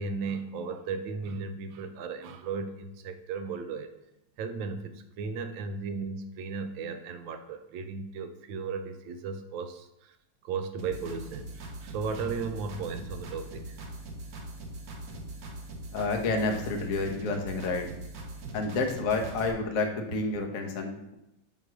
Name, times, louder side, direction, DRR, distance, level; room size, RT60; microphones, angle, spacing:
voice 1, 0.0-3.9 4.4-10.2 10.4-13.8, right 5 dB, 75° right, 8 dB, 1.3 m, -35 dB
sound 1, 10.8-19.5, right 1 dB, 55° right, 1.2 m, -41 dB
voice 2, 15.9-17.9 18.5-21.1, left 3 dB, 50° left, 3 dB, 1.1 m, -29 dB
7.7 x 3.0 x 6.0 m, 0.86 s
omnidirectional pair, 2.4 m